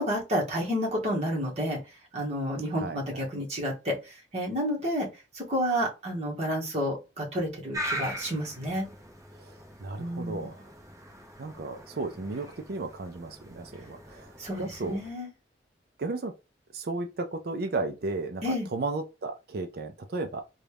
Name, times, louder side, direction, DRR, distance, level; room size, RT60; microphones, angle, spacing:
voice 1, 0.0-1.8 2.1-5.1 5.3-8.8 10.0-10.5 14.4-15.3 18.4-18.7, equal, 35° right, 1.3 m, -30 dB
voice 2, 2.8-3.3 9.4-10.6 11.4-15.0 16.0-16.3 16.7-18.4 18.7-20.4, right 3 dB, 55° right, 0.5 m, -34 dB
sound 1, 7.7-15.1, right 1 dB, 20° right, 0.9 m, -41 dB
4.0 x 2.3 x 3.4 m
head